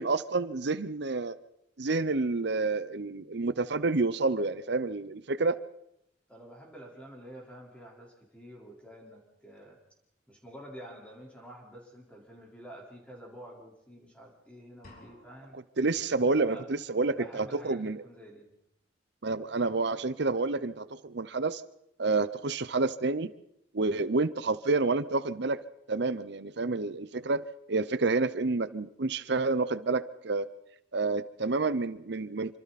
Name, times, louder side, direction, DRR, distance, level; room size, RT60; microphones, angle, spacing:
voice 1, 0.0-1.4 1.8-5.6 15.5-18.0 19.2-21.6 22.0-23.3 23.7-25.6 25.9-30.5 30.9-32.6, right 3 dB, 65° right, 14 dB, 0.8 m, -29 dB
voice 2, 6.3-9.8 10.3-15.6 16.3-16.7 17.1-18.5, right 1 dB, 5° left, -2 dB, 4.2 m, -49 dB
sound 1, 14.8-15.8, left 1 dB, 50° left, 6.0 m, -54 dB
27.0 x 25.5 x 4.2 m, 0.80 s
head